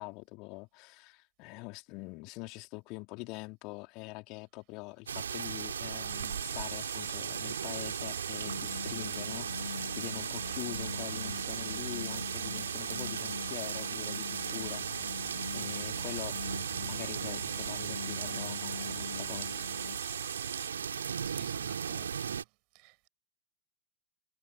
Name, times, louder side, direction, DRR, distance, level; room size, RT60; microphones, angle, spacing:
voice 1, 0.0-15.2 15.5-16.4 16.8-19.9, left 27 dB, 40° left, 3.1 m, -44 dB
sound 1, 5.1-22.4, right 7 dB, 70° right, 3.9 m, -36 dB
sound 2, 6.1-20.7, right 11 dB, 30° right, 5.0 m, -47 dB
sound 3, 8.5-20.0, left 7 dB, 70° left, 1.7 m, -44 dB
voice 2, 20.8-22.4 22.7-23.1, right 33 dB, 45° right, 7.7 m, -52 dB
figure-of-eight pair, 90°, 0 cm